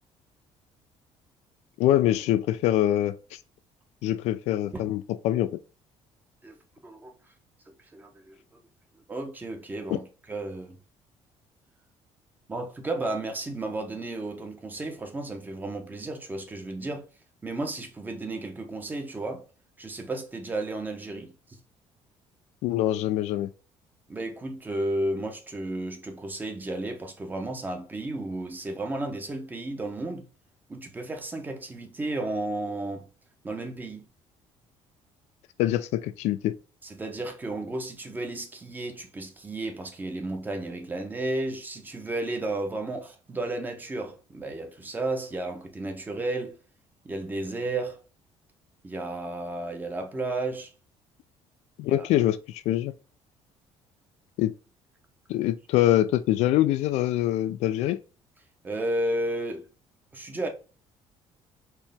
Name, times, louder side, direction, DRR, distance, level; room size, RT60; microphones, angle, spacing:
voice 1, 1.8-3.4 4.0-5.6 22.6-23.5 35.6-36.5 51.8-52.9 54.4-54.5 55.3-58.0, left 13 dB, 85° left, 0.4 m, -24 dB
voice 2, 7.7-8.3 9.1-10.8 12.5-17.1 17.4-19.4 19.8-21.6 24.1-30.2 30.7-33.0 33.4-34.1 36.8-46.6 47.0-48.0 48.8-50.7 51.8-52.1 58.6-59.7 60.1-60.5, right 2 dB, 15° right, 0.8 m, -33 dB
4.5 x 3.0 x 3.5 m
cardioid pair, 140°, 11 cm